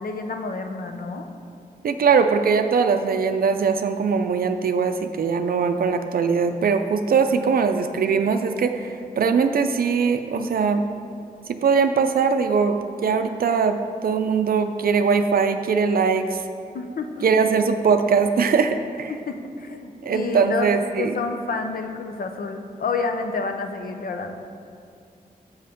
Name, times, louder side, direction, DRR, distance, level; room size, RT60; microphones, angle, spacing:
voice 1, 0.0-1.3 16.7-17.1 19.1-24.4, left 4 dB, 70° left, 5 dB, 0.6 m, -29 dB
voice 2, 1.8-10.8 11.5-16.4 17.2-19.1 20.0-21.1, right 5 dB, 75° right, 7 dB, 0.4 m, -21 dB
7.1 x 5.6 x 5.1 m, 2.5 s
wide cardioid pair, 105°, 15 cm